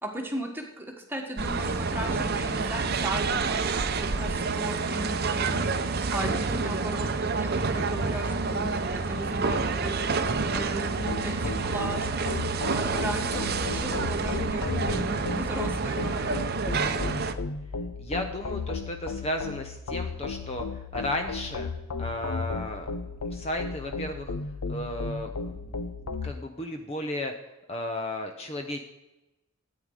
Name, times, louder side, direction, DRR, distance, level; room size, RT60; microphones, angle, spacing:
voice 1, 0.0-16.4, right 1 dB, 10° right, 1 dB, 1.6 m, -36 dB
sound 1, 1.4-17.3, right 4 dB, 45° right, 0.7 m, -28 dB
sound 2, 11.1-26.3, left 4 dB, 85° left, 0.7 m, -35 dB
voice 2, 18.0-21.7 22.0-22.9 23.3-24.3 24.7-25.8 26.2-27.3 27.7-28.8, left 1 dB, 30° left, 5 dB, 0.7 m, -34 dB
13.5 x 9.1 x 4.9 m, 0.99 s
head